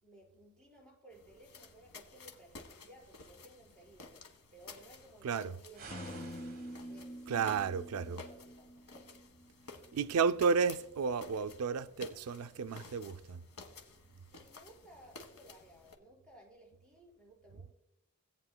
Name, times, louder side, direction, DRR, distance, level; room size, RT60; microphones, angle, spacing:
voice 1, 0.0-4.1 4.5-6.3 6.9-7.3 8.0-9.2 14.3-17.7, right 1 dB, 5° left, 4.5 m, -58 dB
sound 1, 1.1-16.0, left 3 dB, 85° left, 1.3 m, -54 dB
sound 2, 5.7-7.3, right 5 dB, 45° right, 1.5 m, -52 dB
sound 3, 5.9-9.7, equal, 30° left, 0.5 m, -47 dB
voice 2, 7.3-8.2 9.9-13.4, right 5 dB, 80° right, 0.4 m, -32 dB
17.0 x 9.1 x 2.2 m
head